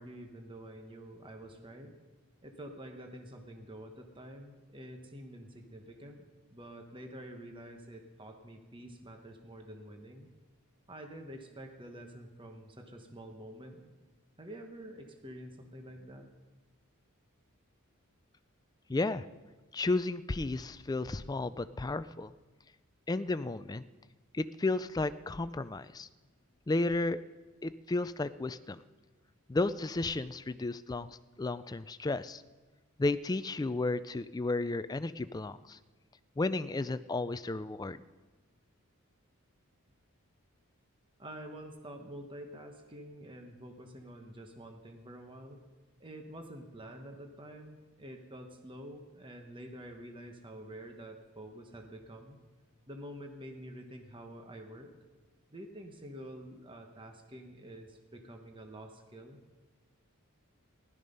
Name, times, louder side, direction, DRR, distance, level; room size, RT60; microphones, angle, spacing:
voice 1, 0.0-1.9 2.4-6.2 6.5-10.3 10.9-13.8 14.4-16.3 41.2-45.6 46.0-52.4 52.9-54.9 55.5-59.4, right 1 dB, 20° right, 3 dB, 1.2 m, -48 dB
voice 2, 18.9-19.2 19.7-22.3 23.1-23.9 24.3-26.1 26.7-27.2 27.6-28.8 29.5-32.4 33.0-35.8 36.4-38.0, left 2 dB, 15° left, 14 dB, 0.3 m, -33 dB
16.0 x 12.5 x 5.4 m, 1.3 s
head